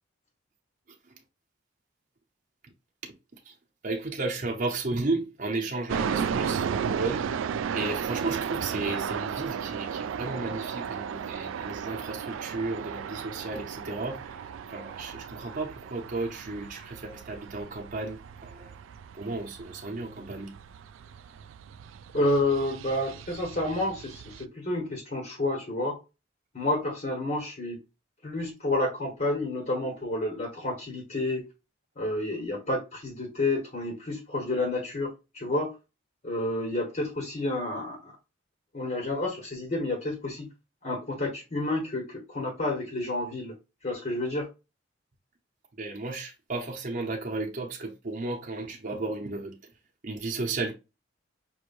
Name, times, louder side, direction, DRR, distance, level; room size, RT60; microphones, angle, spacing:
voice 1, 3.8-7.3 7.7-18.7 19.1-20.5 45.8-49.7 50.0-50.7, right 3 dB, 45° right, 0.8 m, -34 dB
sound 1, 5.9-24.4, right 7 dB, 75° right, 0.3 m, -35 dB
voice 2, 22.1-26.0 26.5-27.8 28.2-31.4 32.0-35.7 36.2-38.1 38.7-40.5 40.8-43.5 43.8-44.5, left 2 dB, 40° left, 1.3 m, -30 dB
5.6 x 3.1 x 2.5 m
head